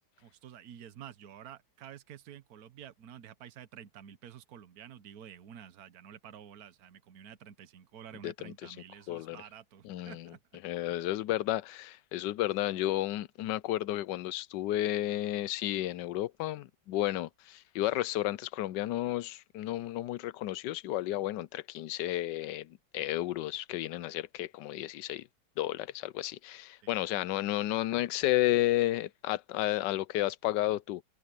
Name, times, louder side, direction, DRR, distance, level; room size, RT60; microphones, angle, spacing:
voice 1, 0.2-10.4 26.8-26.9, right 9 dB, 60° right, 1.4 m, -50 dB
voice 2, 8.2-8.7 9.1-9.4 9.8-10.3 10.6-25.3 25.6-31.0, left 15 dB, 85° left, 1.2 m, -32 dB
omnidirectional pair, 1.9 m